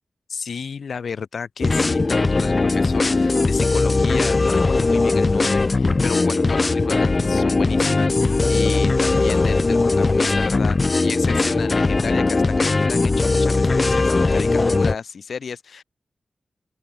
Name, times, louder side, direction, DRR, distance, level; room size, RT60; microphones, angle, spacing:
voice 1, 0.3-15.8, left 6 dB, 80° left, 3.3 m, -32 dB
sound 1, 1.6-15.0, left 3 dB, 45° left, 2.9 m, -19 dB
open air
cardioid pair, 50°, 0 cm